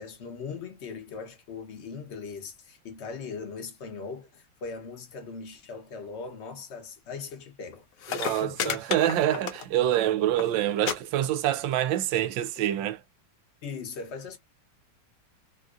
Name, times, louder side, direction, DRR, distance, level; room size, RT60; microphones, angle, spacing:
voice 1, 0.0-8.8 13.6-14.4, left 5 dB, 50° left, 0.9 m, -39 dB
sound 1, 7.7-7.8 8.0-10.0 10.2-10.5 10.8-11.0 11.2-11.7 12.6-12.7, left 8 dB, 80° left, 1.3 m, -32 dB
voice 2, 8.1-13.0, right 12 dB, 90° right, 1.3 m, -26 dB
3.7 x 2.6 x 2.4 m
omnidirectional pair, 2.0 m